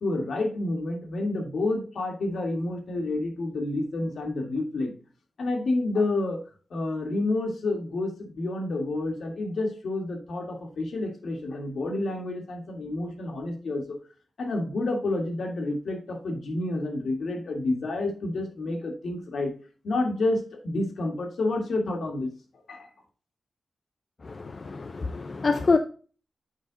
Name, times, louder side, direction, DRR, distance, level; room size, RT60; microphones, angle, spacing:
voice 1, 0.0-4.9 5.4-6.4 6.7-14.0 14.4-19.5 19.8-22.3 22.7-22.9, left 2 dB, 65° left, 1.7 m, -29 dB
voice 2, 24.2-25.8, left 4 dB, 35° left, 0.4 m, -26 dB
7.4 x 5.2 x 3.8 m
wide cardioid pair, 180°, 0 cm